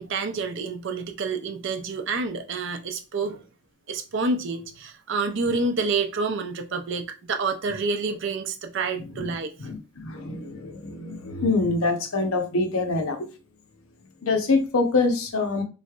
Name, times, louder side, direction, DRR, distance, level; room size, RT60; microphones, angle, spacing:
voice 1, 0.0-3.4 3.9-9.5, right 4 dB, 55° right, 0.5 m, -28 dB
voice 2, 9.6-13.2 14.2-15.6, left 3 dB, 75° left, 0.7 m, -25 dB
3.7 x 3.1 x 2.4 m
head